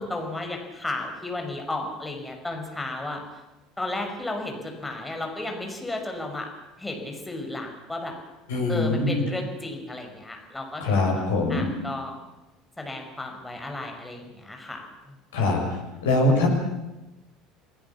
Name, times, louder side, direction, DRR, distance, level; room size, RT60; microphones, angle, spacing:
voice 1, 0.0-3.2 3.8-6.5 6.8-8.1 8.7-11.2 11.5-12.2 12.8-14.8 15.1-15.2, left 2 dB, 10° left, 3 dB, 6.0 m, -33 dB
voice 2, 8.5-9.2 10.8-11.7 15.3-16.5, left 2 dB, 70° left, 2 dB, 6.8 m, -23 dB
29.0 x 19.0 x 7.3 m, 1.0 s
figure-of-eight pair, 65°, 0 cm